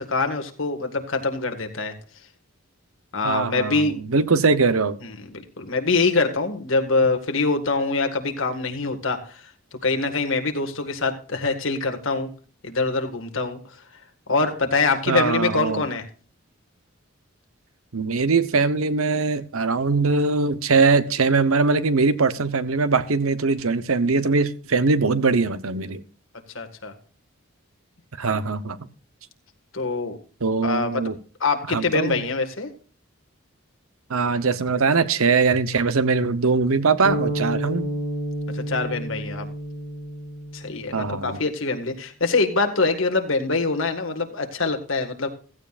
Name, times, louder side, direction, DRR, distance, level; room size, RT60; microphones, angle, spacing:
voice 1, 0.0-1.9 3.1-4.0 5.0-9.5 9.8-12.3 12.6-13.8 14.3-16.1 26.5-26.9 29.7-30.2 30.6-31.1 31.4-32.7 38.5-39.5 40.5-45.3, left 3 dB, 65° left, 1.9 m, -24 dB
voice 2, 3.2-3.8 4.1-5.0 15.1-15.8 17.9-26.0 28.2-28.8 30.4-31.1 31.7-32.1 34.1-37.8 40.9-41.4, right 4 dB, 80° right, 0.9 m, -21 dB
sound 1, 37.0-41.3, right 1 dB, 10° right, 5.0 m, -30 dB
16.0 x 15.0 x 2.5 m
head